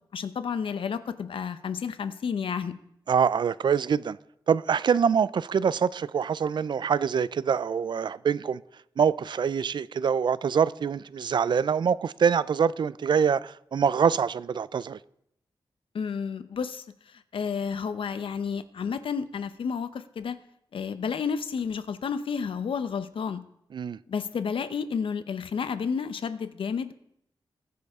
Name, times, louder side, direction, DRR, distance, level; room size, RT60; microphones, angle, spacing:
voice 1, 0.1-2.8 15.9-20.4 20.7-23.4 24.1-26.9, left 6 dB, 75° left, 0.8 m, -31 dB
voice 2, 3.1-4.2 4.5-8.6 9.0-15.0 23.7-24.0, right 7 dB, 60° right, 0.4 m, -25 dB
21.5 x 9.4 x 3.6 m
wide cardioid pair, 140°, 9 cm